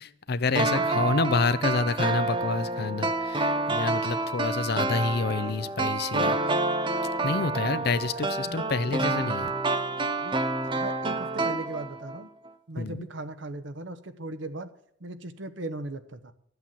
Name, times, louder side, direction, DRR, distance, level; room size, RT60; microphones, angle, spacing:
voice 1, 0.0-6.6 7.2-9.5 12.8-13.1, left 4 dB, 60° left, 14 dB, 0.7 m, -28 dB
sound 1, 0.5-12.2 12.5-12.6, right 2 dB, 25° right, 0.8 m, -28 dB
voice 2, 0.7-1.0 7.3-7.6 8.1-9.0 10.2-12.3 12.7-14.7 15.0-16.3, right 2 dB, 85° right, 10 dB, 1.0 m, -38 dB
13.0 x 8.1 x 7.4 m, 0.68 s
head